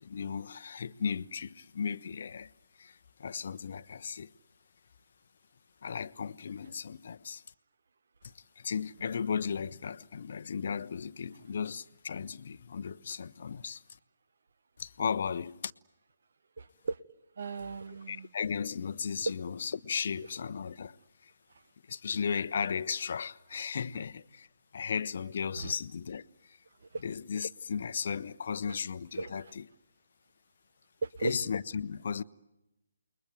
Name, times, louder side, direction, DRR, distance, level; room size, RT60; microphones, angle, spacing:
voice 1, 0.0-2.5 2.8-4.3 5.8-7.4 8.2-13.8 14.8-15.7 18.1-21.3 21.9-24.5 24.7-26.6 27.0-29.6 31.2-32.2, left 6 dB, 55° left, 0.9 m, -35 dB
voice 2, 16.6-17.0 17.4-18.3 25.6-25.7 26.9-27.0 29.2-29.4 31.0-31.3, right 4 dB, 60° right, 0.9 m, -36 dB
29.0 x 21.5 x 9.2 m
figure-of-eight pair, 140°, 0 cm